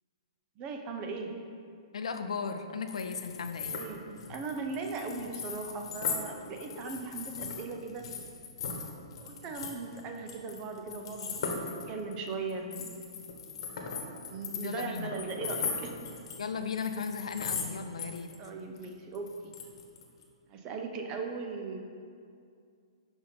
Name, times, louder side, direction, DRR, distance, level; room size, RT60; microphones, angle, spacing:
voice 1, 0.6-1.3 3.7-8.1 9.2-13.0 14.3-15.9 18.4-19.5 20.5-21.8, right 4 dB, 25° right, 4 dB, 0.6 m, -38 dB
voice 2, 1.9-3.8 14.6-15.1 16.4-18.3, left 5 dB, 85° left, 7 dB, 0.6 m, -36 dB
sound 1, 2.9-6.2 6.5-17.7 18.0-18.5 18.8-20.2, left 5 dB, 60° left, 1.2 m, -38 dB
6.2 x 5.4 x 5.2 m, 2.3 s
hypercardioid pair, 155°, 3 cm